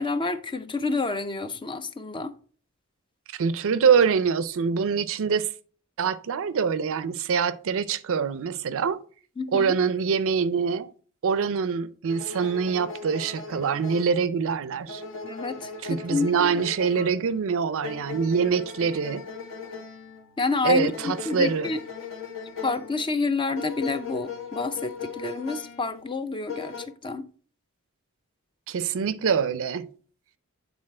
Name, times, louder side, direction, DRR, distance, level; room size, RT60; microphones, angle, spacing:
voice 1, 0.0-2.3 9.4-9.8 15.2-16.6 17.0-17.1 20.4-21.8 22.6-26.7 27.0-27.3, left 3 dB, 20° left, 0.4 m, -29 dB
voice 2, 3.3-5.5 6.0-9.0 9.5-10.9 11.2-15.0 15.8-19.2 20.6-21.7 28.7-29.9, right 6 dB, 60° right, 0.4 m, -24 dB
sound 1, 12.1-26.9, left 5 dB, 60° left, 1.2 m, -39 dB
8.8 x 4.0 x 4.2 m
head